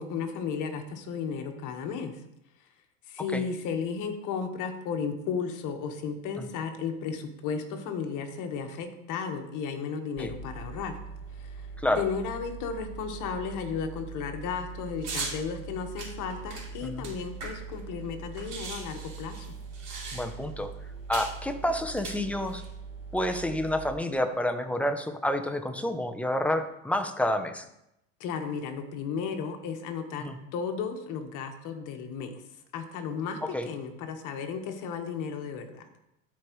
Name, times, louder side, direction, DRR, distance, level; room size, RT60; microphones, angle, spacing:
voice 1, 0.0-2.1 3.1-11.0 11.4-11.6 12.0-19.6 28.2-32.4 32.7-35.9, left 6 dB, 50° left, 5 dB, 1.4 m, -34 dB
sound 1, 10.2-23.9, right 5 dB, 30° right, 1.8 m, -42 dB
sound 2, 15.0-15.4 16.0-17.8 18.0-18.1 18.3-20.5 21.1-21.4 21.9-22.7, right 4 dB, 45° right, 3.2 m, -38 dB
voice 2, 20.1-20.7 21.1-22.6 23.1-27.7 30.2-30.4 33.4-33.7, left 1 dB, 5° left, 6 dB, 0.7 m, -29 dB
13.0 x 4.8 x 3.1 m, 0.83 s
hypercardioid pair, 100°, 38 cm